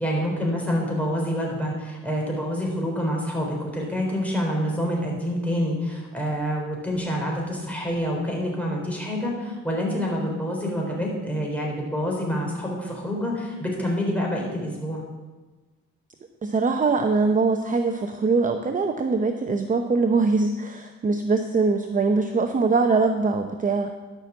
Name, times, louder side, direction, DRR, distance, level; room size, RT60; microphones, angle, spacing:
voice 1, 0.0-15.0, equal, 5° left, -2 dB, 4.1 m, -27 dB
voice 2, 16.4-23.9, right 4 dB, 25° right, 5 dB, 0.8 m, -22 dB
12.5 x 6.0 x 7.0 m, 1.3 s
cardioid pair, 90°, 30 cm